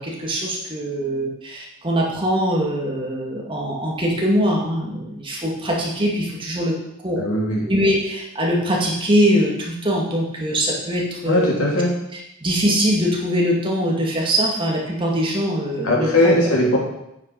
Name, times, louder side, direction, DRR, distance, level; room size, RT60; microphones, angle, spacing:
voice 1, 0.0-6.7 7.0-7.2 7.7-11.5 12.1-16.4, equal, 25° right, -2 dB, 2.2 m, -22 dB
voice 2, 7.2-7.7 11.3-11.9 15.8-16.8, left 1 dB, 85° left, -3 dB, 3.4 m, -19 dB
9.5 x 8.0 x 5.5 m, 0.84 s
head